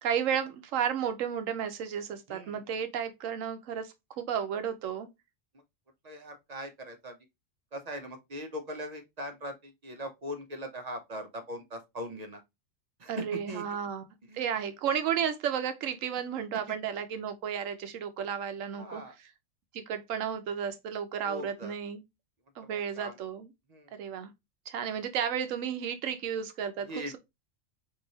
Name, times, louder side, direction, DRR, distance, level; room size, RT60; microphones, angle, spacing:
voice 1, 0.0-5.1 13.1-14.0 14.3-19.0 19.7-22.0 22.6-23.5 24.0-24.3 24.7-26.9, right 8 dB, 85° right, 1.1 m, -33 dB
voice 2, 2.3-2.6 6.0-7.2 7.7-12.4 13.0-13.7 14.3-14.5 18.8-19.2 21.2-21.7 22.6-23.2 23.7-24.0 26.9-27.2, equal, 40° right, 0.6 m, -40 dB
4.8 x 2.7 x 2.7 m
omnidirectional pair, 1.3 m